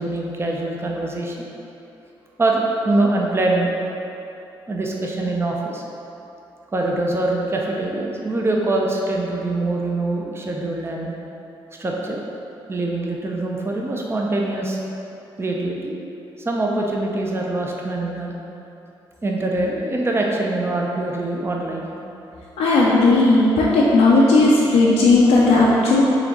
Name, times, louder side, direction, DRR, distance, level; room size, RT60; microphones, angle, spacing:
voice 1, 0.0-1.5 2.4-3.7 4.7-5.8 6.7-11.1 11.8-12.2 12.7-14.8 15.4-16.0 16.4-18.3 19.2-21.9, right 2 dB, 20° right, -1 dB, 0.5 m, -23 dB
voice 2, 22.6-26.0, left 2 dB, 70° left, -6 dB, 0.5 m, -15 dB
3.9 x 3.4 x 2.9 m, 2.9 s
hypercardioid pair, 45°, 11 cm